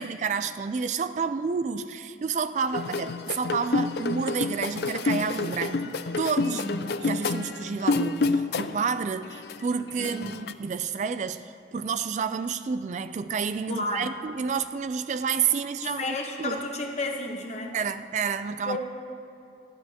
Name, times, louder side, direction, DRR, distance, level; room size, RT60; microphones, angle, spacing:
voice 1, 0.0-16.6 17.7-18.8, right 6 dB, 40° right, 11 dB, 0.3 m, -30 dB
sound 1, 2.7-8.9 9.2-10.5, left 3 dB, 60° left, 0.4 m, -29 dB
voice 2, 6.5-6.8 10.0-10.4 13.7-14.1 15.8-17.8 18.7-18.8, left 2 dB, 40° left, 2 dB, 1.2 m, -32 dB
27.0 x 10.0 x 2.9 m, 2.5 s
head